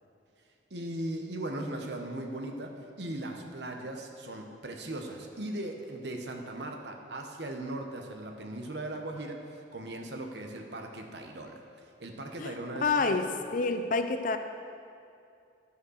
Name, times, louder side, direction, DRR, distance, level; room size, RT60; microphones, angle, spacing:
voice 1, 0.7-11.6 12.0-13.3, right 1 dB, 65° right, 3 dB, 1.0 m, -38 dB
voice 2, 12.8-13.3 13.5-14.4, left 4 dB, 45° left, 8 dB, 0.5 m, -27 dB
11.0 x 5.2 x 6.3 m, 2.5 s
head